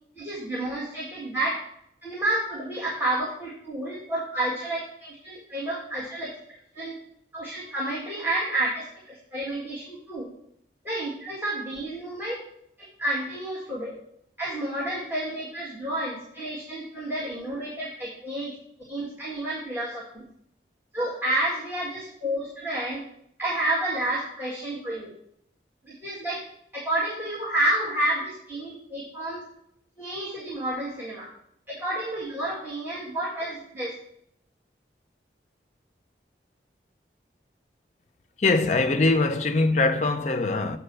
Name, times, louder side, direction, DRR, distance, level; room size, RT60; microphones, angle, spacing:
voice 1, 0.2-1.6 2.0-6.3 6.7-7.0 7.3-10.3 10.8-12.4 13.0-14.0 14.4-18.5 18.9-20.2 20.9-23.0 23.4-25.1 25.8-26.4 26.7-29.4 30.0-31.3 31.7-33.9, right 1 dB, 10° right, 1.9 m, -30 dB
voice 2, 38.4-40.8, left 3 dB, 40° left, 0.6 m, -22 dB
7.7 x 4.2 x 6.9 m
head